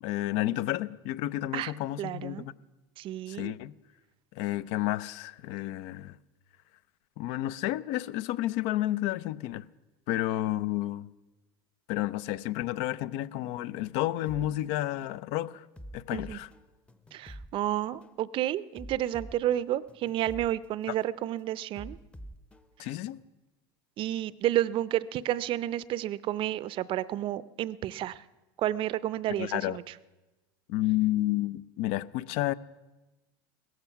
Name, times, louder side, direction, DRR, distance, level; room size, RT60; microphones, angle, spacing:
voice 1, 0.0-2.5 3.3-3.7 4.3-6.2 7.2-9.6 10.1-11.1 11.9-15.7 15.9-16.5 22.8-23.2 29.4-29.8 30.7-32.5, left 15 dB, 60° left, 0.6 m, -31 dB
voice 2, 2.0-2.5 3.0-3.5 16.1-16.4 17.1-22.0 24.0-28.2 28.6-29.8, right 13 dB, 45° right, 0.6 m, -31 dB
sound 1, 14.3-14.5 15.0-15.2 15.8-17.5 18.0-18.2 18.8-20.5 21.0-21.2 21.8-23.3, equal, 10° left, 0.8 m, -46 dB
17.5 x 14.0 x 5.8 m
supercardioid pair, 115°, 13 cm